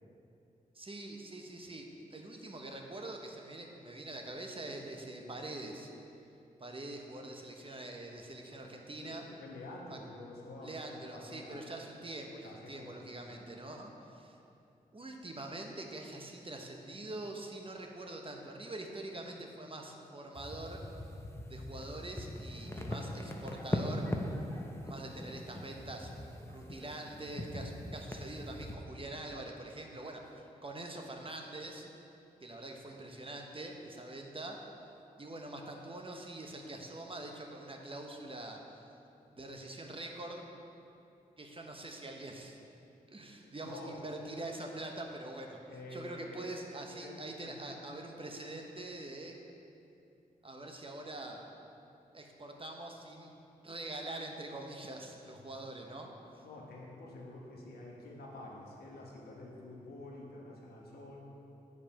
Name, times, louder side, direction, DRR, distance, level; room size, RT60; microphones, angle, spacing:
voice 1, 0.7-1.8 2.1-5.9 6.6-9.2 9.9-10.0 10.6-14.4 14.9-20.8 21.5-24.1 24.8-26.1 26.5-31.9 32.4-34.7 35.2-38.6 39.3-40.4 41.4-42.6 43.1-45.6 45.9-49.4 50.4-51.4 52.1-53.3 53.6-56.1, right 2 dB, 35° right, 2 dB, 1.0 m, -44 dB
voice 2, 9.0-11.7 12.4-13.6 43.4-44.0 45.7-46.5 47.0-47.7 55.3-55.4 56.4-61.3, left 2 dB, 90° left, -3 dB, 1.2 m, -49 dB
sound 1, 20.3-28.7, left 1 dB, 15° left, 0.8 m, -40 dB
7.1 x 4.8 x 5.8 m, 2.7 s
cardioid pair, 45°, 16 cm